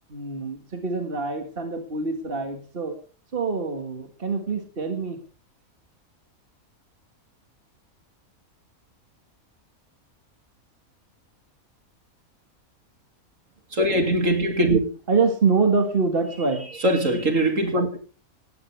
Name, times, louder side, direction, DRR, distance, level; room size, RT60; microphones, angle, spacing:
voice 1, 0.1-2.9 3.3-5.2 15.1-16.7, right 4 dB, 40° right, 2.1 m, -25 dB
voice 2, 13.7-14.8 16.8-18.0, right 1 dB, 60° right, 3.0 m, -21 dB
19.0 x 16.0 x 3.5 m
omnidirectional pair, 1.5 m